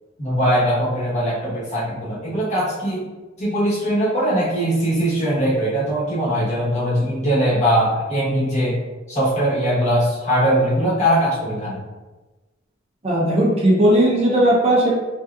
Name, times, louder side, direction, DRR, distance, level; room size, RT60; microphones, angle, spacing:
voice 1, 0.2-3.0 3.4-8.8 9.1-11.8, equal, 35° left, -7 dB, 1.0 m, -20 dB
voice 2, 13.0-14.9, right 1 dB, 35° right, -4 dB, 0.6 m, -16 dB
3.3 x 2.8 x 2.3 m, 1.2 s
head